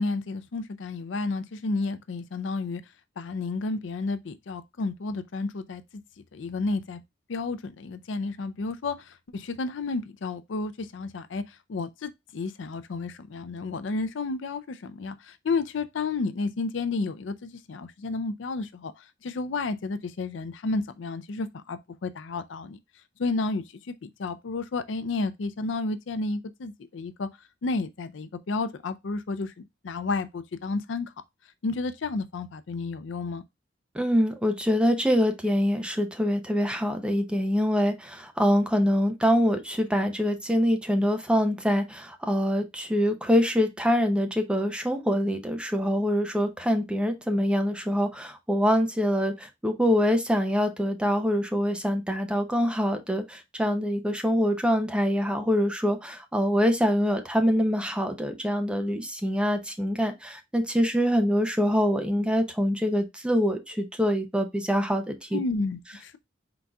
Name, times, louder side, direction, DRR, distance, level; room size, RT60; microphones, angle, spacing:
voice 1, 0.0-2.8 3.2-5.8 6.3-7.0 7.3-22.8 23.2-27.3 27.6-31.1 31.6-33.4 65.3-66.2, left 3 dB, 70° left, 0.5 m, -31 dB
voice 2, 33.9-65.4, equal, 5° right, 0.7 m, -25 dB
4.5 x 3.9 x 2.3 m
head